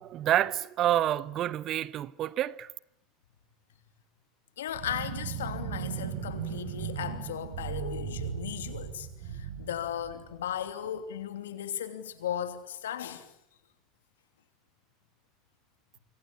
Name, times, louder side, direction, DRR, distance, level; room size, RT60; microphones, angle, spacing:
voice 1, 0.0-2.7, right 12 dB, 45° right, 1.1 m, -28 dB
voice 2, 4.6-13.3, left 10 dB, 85° left, 3.0 m, -36 dB
sound 1, 4.7-10.7, right 8 dB, 75° right, 6.3 m, -37 dB
27.5 x 25.0 x 8.7 m
hypercardioid pair, 85°, 0 cm